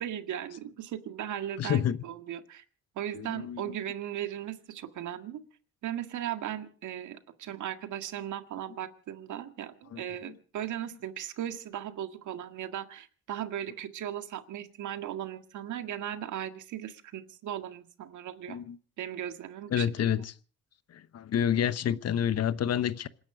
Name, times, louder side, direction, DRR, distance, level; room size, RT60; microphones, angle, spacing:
voice 1, 0.0-2.6 3.0-5.4 5.8-18.6 19.0-20.1, right 11 dB, 75° right, 1.9 m, -37 dB
voice 2, 1.6-2.0 3.1-3.8 9.9-10.3 18.5-18.8 19.7-20.3 20.9-23.1, left 9 dB, 55° left, 1.0 m, -29 dB
27.0 x 10.5 x 5.0 m
cardioid pair, 90°, 30 cm